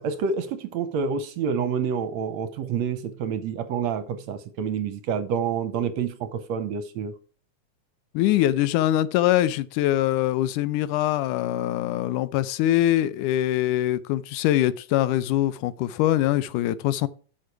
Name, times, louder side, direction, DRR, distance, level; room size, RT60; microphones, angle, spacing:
voice 1, 0.0-7.1, right 6 dB, 70° right, 1.8 m, -28 dB
voice 2, 8.1-17.1, left 13 dB, 85° left, 2.2 m, -23 dB
11.5 x 6.7 x 4.7 m
omnidirectional pair, 3.6 m